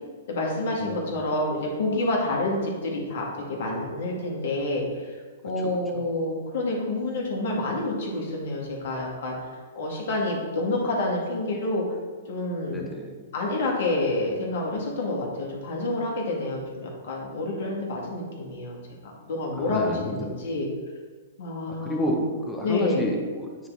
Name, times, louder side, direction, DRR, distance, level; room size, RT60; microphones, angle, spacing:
voice 1, 0.3-5.1 5.4-9.5 9.8-11.8 12.3-12.9 13.3-18.8 19.2-20.7 21.4-22.2 22.6-23.1, left 2 dB, 60° left, -2 dB, 1.9 m, -28 dB
voice 2, 0.8-1.1 5.6-6.0 12.7-13.2 19.6-20.4 21.7-23.7, equal, 5° left, 0 dB, 1.2 m, -31 dB
9.3 x 3.9 x 3.5 m, 1.5 s
hypercardioid pair, 115°, 0 cm